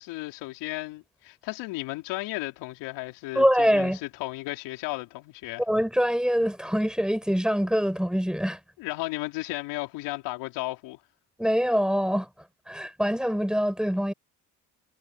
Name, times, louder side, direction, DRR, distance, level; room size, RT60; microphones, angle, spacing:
voice 1, 0.0-5.6 8.8-11.0, left 20 dB, 80° left, 4.2 m, -34 dB
voice 2, 3.3-4.0 5.7-8.6 11.4-12.3 12.7-14.1, equal, ahead, 5.6 m, -24 dB
supercardioid pair, 70°, 41 cm